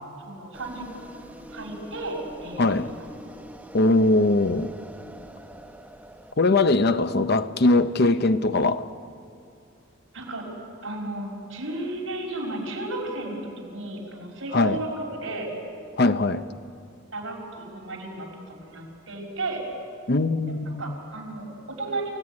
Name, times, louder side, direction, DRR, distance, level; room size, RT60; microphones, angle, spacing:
voice 1, 0.2-1.1 1.5-2.2 2.4-2.9 10.1-10.4 10.8-15.5 17.1-19.6 20.7-22.2, right 2 dB, 75° right, -2 dB, 5.8 m, -34 dB
sound 1, 0.5-6.3, equal, 5° right, 1.0 m, -44 dB
voice 2, 2.6-2.9 3.7-4.7 6.4-8.9 14.5-14.8 16.0-16.4 20.1-21.0, left 2 dB, 50° left, 11 dB, 0.7 m, -21 dB
27.5 x 15.5 x 9.7 m, 2.4 s
head